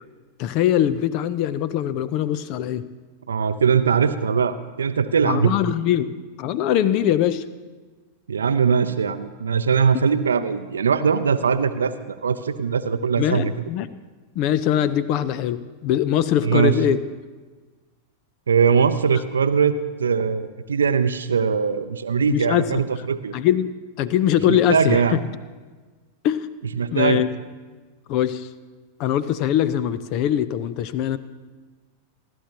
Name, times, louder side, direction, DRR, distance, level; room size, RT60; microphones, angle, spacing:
voice 1, 0.4-2.8 5.2-6.1 6.4-7.5 13.2-13.9 14.3-17.0 22.3-22.8 23.3-25.2 26.2-26.5 26.9-27.3 28.1-28.5 29.0-31.2, left 10 dB, 40° left, 16 dB, 0.7 m, -22 dB
voice 2, 3.3-5.5 8.3-13.5 16.4-16.7 18.5-23.3 24.5-25.2 26.8-27.2, right 6 dB, 70° right, 10 dB, 0.6 m, -21 dB
27.5 x 12.5 x 2.9 m, 1.3 s
figure-of-eight pair, 90°, 0 cm